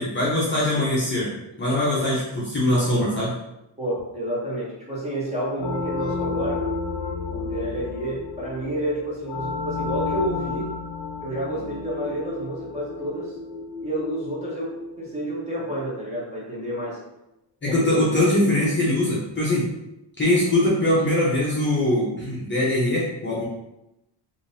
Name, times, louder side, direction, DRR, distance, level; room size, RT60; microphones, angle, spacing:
voice 1, 0.0-1.3 1.6-3.3 17.6-19.7 20.2-23.4, left 1 dB, 25° left, -6 dB, 0.6 m, -22 dB
voice 2, 3.8-6.7 7.3-10.7 11.2-13.3 13.8-17.0 17.6-17.8 18.4-18.5, right 1 dB, 15° right, -6 dB, 0.8 m, -30 dB
sound 1, 5.6-16.0, left 4 dB, 65° left, 0.5 m, -32 dB
3.6 x 2.6 x 2.6 m, 0.89 s
wide cardioid pair, 175°, 48 cm